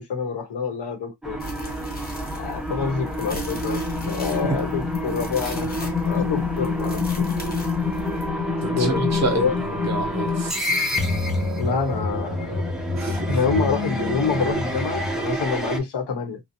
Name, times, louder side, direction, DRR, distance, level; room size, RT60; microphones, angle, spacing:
voice 1, 0.0-1.4 2.3-3.8 4.1-7.3 8.8-9.6 11.6-12.7 13.3-16.4, left 5 dB, 75° left, 0.8 m, -27 dB
sound 1, 1.2-15.8, left 2 dB, ahead, 0.4 m, -26 dB
sound 2, 1.4-8.3, left 1 dB, 25° left, 0.8 m, -37 dB
voice 2, 8.6-10.6 12.9-13.4, right 3 dB, 40° right, 0.7 m, -28 dB
2.5 x 2.0 x 2.6 m
wide cardioid pair, 170°, 41 cm